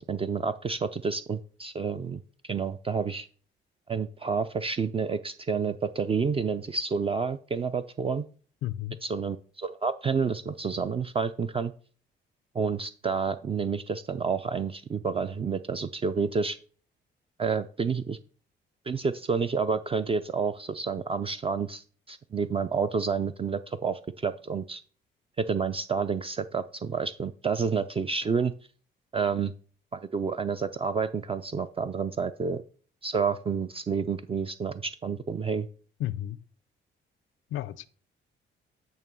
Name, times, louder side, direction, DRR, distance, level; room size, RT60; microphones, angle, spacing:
voice 1, 0.0-3.3 3.9-8.2 9.0-11.7 12.5-16.6 17.4-18.2 18.9-24.8 25.4-28.5 29.1-29.5 29.9-32.6 33.0-35.7, right 5 dB, 30° right, 0.4 m, -29 dB
voice 2, 8.6-9.0 36.0-36.4 37.5-37.8, left 13 dB, 80° left, 0.5 m, -32 dB
8.9 x 3.0 x 6.1 m
cardioid pair, 90°, 20 cm